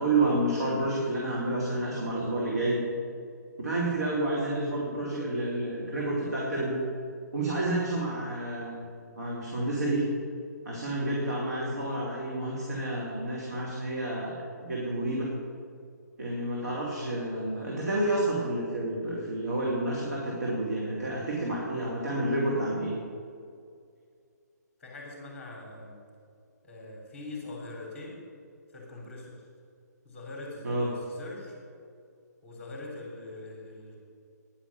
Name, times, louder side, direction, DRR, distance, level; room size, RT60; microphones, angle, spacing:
voice 1, 0.0-2.8 3.6-6.8 7.3-8.9 9.2-10.1 10.6-15.3 16.2-22.9 30.6-30.9, right 1 dB, 60° right, -4 dB, 2.7 m, -29 dB
voice 2, 24.8-26.0 26.6-28.2 28.7-29.4 30.0-31.5 32.4-34.0, left 2 dB, 10° left, -2 dB, 3.6 m, -42 dB
10.5 x 10.0 x 6.8 m, 2.3 s
figure-of-eight pair, 135°, 10 cm